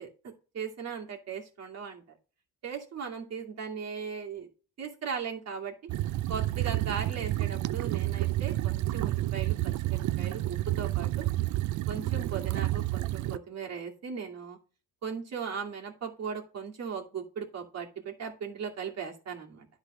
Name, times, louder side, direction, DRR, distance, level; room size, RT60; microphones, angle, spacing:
voice 1, 0.0-2.0 2.6-4.5 4.8-5.7 6.3-11.3 11.9-14.6 15.0-19.7, right 6 dB, 60° right, 1 dB, 2.4 m, -38 dB
sound 1, 5.9-13.4, right 16 dB, 75° right, 0.5 m, -30 dB
10.5 x 4.1 x 5.0 m, 0.36 s
cardioid pair, 90°, 30 cm